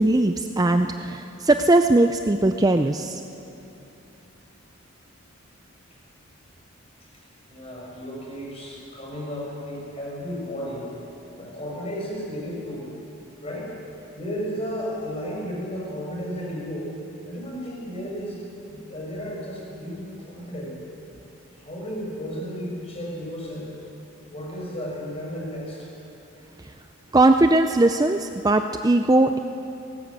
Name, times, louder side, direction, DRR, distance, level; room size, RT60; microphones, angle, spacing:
voice 1, 0.0-3.2 27.1-29.4, right 2 dB, 15° right, 7 dB, 0.4 m, -19 dB
voice 2, 7.5-12.9 13.4-13.7 14.1-16.9 17.2-18.4 18.7-20.7 21.6-23.7 24.3-25.9, equal, 30° left, -2 dB, 5.3 m, -33 dB
18.5 x 17.0 x 8.3 m, 2.9 s
head